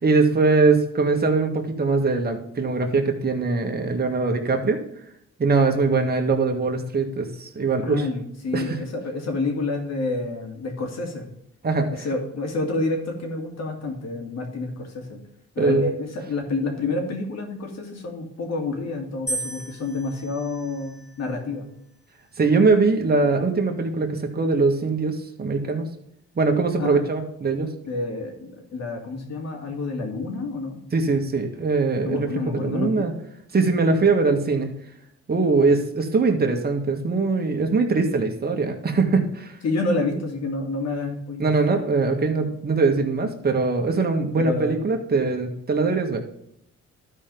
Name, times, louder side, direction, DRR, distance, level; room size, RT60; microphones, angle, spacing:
voice 1, 0.0-4.8 5.4-8.0 8.5-8.8 11.6-11.9 15.6-15.8 22.4-25.9 26.4-27.7 30.9-33.1 33.5-34.7 35.3-39.5 41.4-46.2, right 4 dB, 30° right, 3 dB, 1.7 m, -22 dB
voice 2, 7.8-11.3 11.9-15.2 15.5-21.7 26.8-27.0 27.8-30.8 32.0-33.1 39.6-41.5 42.4-42.5 44.4-44.9, left 3 dB, 60° left, 2 dB, 2.6 m, -28 dB
sound 1, 19.3-21.5 22.3-22.8, right 2 dB, 20° left, 3.0 m, -36 dB
12.0 x 4.6 x 5.3 m, 0.75 s
cardioid pair, 90°, 30 cm